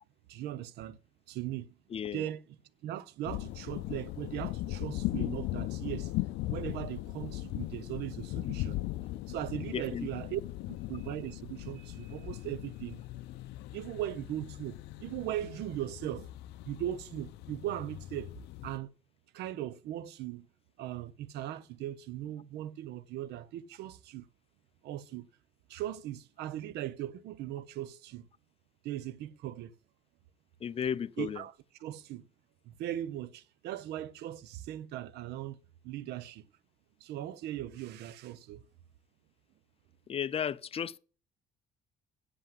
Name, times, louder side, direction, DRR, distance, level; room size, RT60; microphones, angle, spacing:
voice 1, 0.3-1.0 1.3-1.8 2.1-2.4 2.8-6.1 6.5-8.8 9.3-10.4 10.7-13.0 13.7-16.3 16.6-18.3 18.6-18.9 19.3-20.5 20.8-24.3 24.8-25.3 25.7-28.3 28.8-29.7 31.2-31.5 31.8-32.3 32.6-35.6 35.8-36.5 37.0-38.6, right 12 dB, 80° right, 0.8 m, -39 dB
voice 2, 1.9-2.2 9.7-10.1 30.6-31.4 40.1-41.0, left 8 dB, 35° left, 0.6 m, -34 dB
sound 1, 3.3-18.8, left 17 dB, 85° left, 0.5 m, -39 dB
8.2 x 7.9 x 7.4 m
cardioid pair, 110°, 17 cm